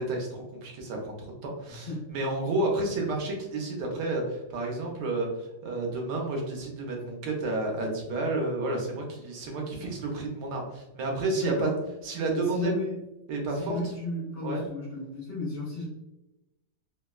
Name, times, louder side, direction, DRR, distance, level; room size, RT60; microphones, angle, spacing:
voice 1, 0.0-11.7 12.0-12.7 13.3-13.8 14.4-14.6, right 2 dB, 70° right, 0 dB, 1.2 m, -31 dB
voice 2, 1.7-2.0 11.4-11.8 12.3-13.0 13.5-15.9, left 2 dB, 65° left, -6 dB, 0.6 m, -33 dB
3.5 x 2.1 x 2.2 m, 0.98 s
omnidirectional pair, 2.1 m